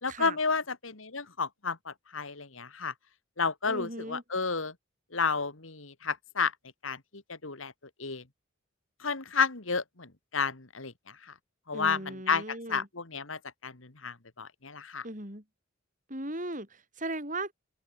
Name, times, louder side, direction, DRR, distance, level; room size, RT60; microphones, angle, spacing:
voice 1, 0.0-2.9 3.4-4.7 5.1-6.5 6.8-7.7 8.0-8.2 9.0-10.9 11.7-15.0, left 5 dB, 85° left, 2.4 m, -31 dB
voice 2, 3.7-4.2 11.7-12.9 15.0-15.4 16.1-17.5, right 2 dB, 40° right, 7.7 m, -37 dB
open air
head